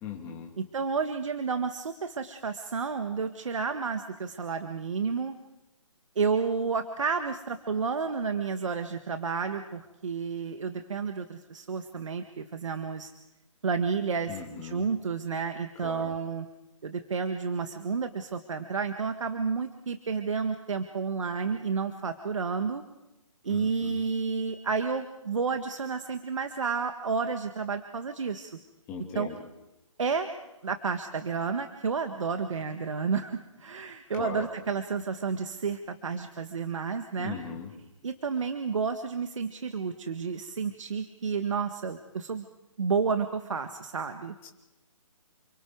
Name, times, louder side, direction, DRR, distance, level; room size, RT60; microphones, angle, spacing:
voice 1, 0.0-0.5 14.3-14.9 15.8-16.2 23.5-24.0 28.9-29.4 34.1-34.5 37.2-37.7 44.4-44.5, left 6 dB, 15° left, 0 dB, 2.7 m, -39 dB
voice 2, 0.6-5.3 6.1-13.1 13.6-16.5 16.8-22.8 23.4-28.5 29.1-29.3 30.0-30.3 30.6-37.4 38.0-42.4 42.8-44.3, right 5 dB, 65° right, 7 dB, 1.6 m, -31 dB
29.5 x 24.5 x 4.7 m, 0.99 s
hypercardioid pair, 165°, 17 cm